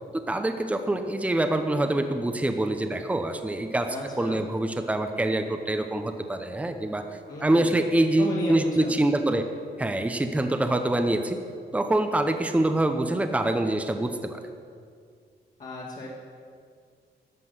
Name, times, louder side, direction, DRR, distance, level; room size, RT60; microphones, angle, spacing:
voice 1, 0.3-7.0 7.4-9.4 9.8-11.4 11.7-14.4, right 1 dB, 10° right, 6 dB, 0.8 m, -25 dB
voice 2, 3.9-4.4 7.3-7.7 8.2-9.0 15.6-16.1, left 1 dB, 50° left, -6 dB, 2.3 m, -34 dB
13.5 x 6.2 x 9.4 m, 2.1 s
cardioid pair, 125°, 17 cm